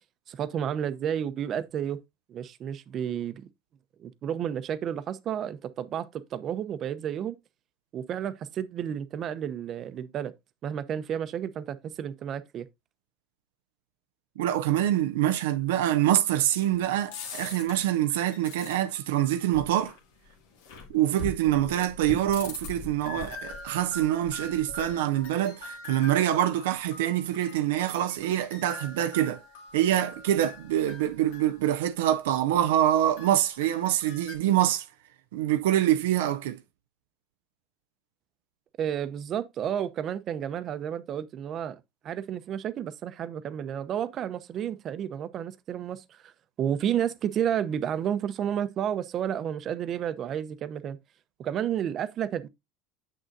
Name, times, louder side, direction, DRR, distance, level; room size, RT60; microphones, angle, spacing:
voice 1, 0.3-2.0 2.3-3.5 4.0-7.4 7.9-10.3 10.6-12.7 38.8-41.8 42.0-46.3 46.6-51.0 51.4-52.5, right 9 dB, 45° right, 0.7 m, -31 dB
voice 2, 14.4-19.9 20.9-29.4 29.7-34.9 35.3-36.6, right 12 dB, 90° right, 0.4 m, -25 dB
sound 1, 16.5-31.6 32.7-34.4, left 2 dB, 85° left, 1.9 m, -43 dB
7.7 x 6.3 x 2.6 m
supercardioid pair, 110°, 0 cm